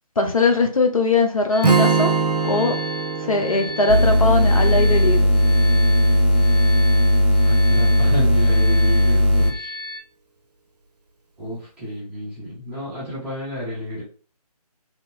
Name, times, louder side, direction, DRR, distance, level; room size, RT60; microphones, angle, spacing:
voice 1, 0.2-2.1 2.4-2.8 3.2-5.3, left 3 dB, 55° left, 3 dB, 0.7 m, -20 dB
sound 1, 1.5-10.0, left 2 dB, 15° left, 0.5 m, -35 dB
Strum, 1.6-5.8, right 5 dB, 80° right, 0.6 m, -24 dB
sound 2, 3.9-9.5, left 1 dB, 85° left, 1.2 m, -16 dB
voice 2, 7.4-9.7 11.4-14.0, equal, 5° right, -10 dB, 0.9 m, -31 dB
2.9 x 2.0 x 3.9 m, 0.38 s
figure-of-eight pair, 155°, 20 cm